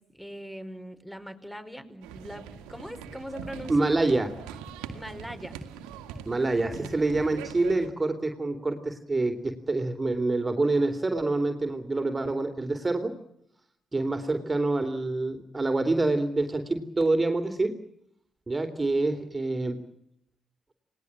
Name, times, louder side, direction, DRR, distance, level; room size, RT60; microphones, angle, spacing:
voice 1, 0.1-3.9 4.9-5.6, equal, 5° left, 9 dB, 5.1 m, -41 dB
sound 1, 2.0-7.9, right 7 dB, 75° right, 2.2 m, -42 dB
voice 2, 3.7-4.3 6.3-13.1 13.9-17.8 18.5-19.8, right 2 dB, 25° right, 6 dB, 3.5 m, -26 dB
30.0 x 20.0 x 7.5 m, 0.73 s
hypercardioid pair, 40°, 0 cm